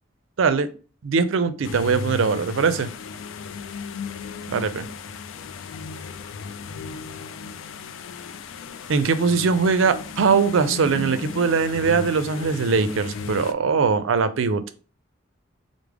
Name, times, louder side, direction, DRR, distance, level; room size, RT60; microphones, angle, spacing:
voice 1, 0.4-0.7 1.0-2.9 4.5-4.9 8.9-14.6, right 5 dB, 75° right, 12 dB, 0.4 m, -21 dB
sound 1, 1.6-13.5, left 4 dB, 80° left, 0.3 m, -35 dB
4.7 x 2.0 x 3.4 m, 0.37 s
head